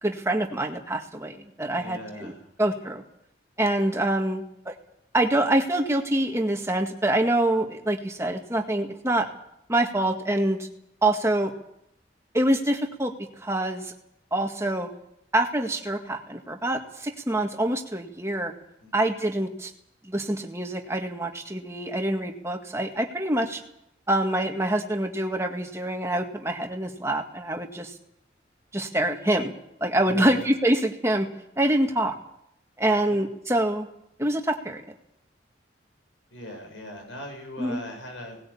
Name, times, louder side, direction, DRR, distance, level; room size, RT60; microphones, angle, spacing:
voice 1, 0.0-2.3 2.6-3.0 3.6-4.7 5.1-9.3 9.7-10.7 11.0-11.5 12.3-13.1 13.4-13.9 14.3-14.9 15.3-18.5 18.9-19.7 20.0-23.6 24.1-27.9 28.7-29.5 29.8-31.3 31.6-32.1 32.8-33.9 34.2-34.8 37.6-37.8, right 1 dB, 15° right, 3 dB, 1.8 m, -25 dB
voice 2, 1.8-2.5 18.8-19.0 30.0-30.5 33.1-33.2 36.3-38.4, left 1 dB, 80° left, 3 dB, 7.3 m, -39 dB
19.0 x 17.5 x 8.6 m, 0.78 s
head